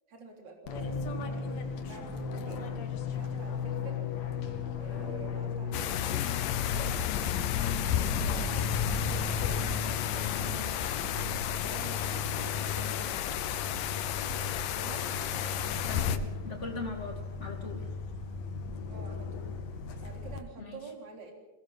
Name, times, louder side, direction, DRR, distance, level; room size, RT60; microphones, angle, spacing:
voice 1, 0.1-2.7 3.1-4.0 4.8-6.1 6.5-7.0 7.4-10.7 11.5-12.0 12.6-13.4 14.8-15.1 18.9-19.5 20.0-21.3, right 4 dB, 30° right, 2 dB, 3.8 m, -48 dB
Fixed-wing aircraft airplane, 0.7-20.4, left 5 dB, 60° left, 2.6 m, -36 dB
sound 1, 5.7-16.2, left 10 dB, 80° left, 2.6 m, -32 dB
voice 2, 15.9-17.8 20.6-20.8, left 3 dB, 20° left, 2 dB, 2.7 m, -40 dB
21.5 x 18.0 x 7.2 m, 1.1 s
omnidirectional pair, 4.0 m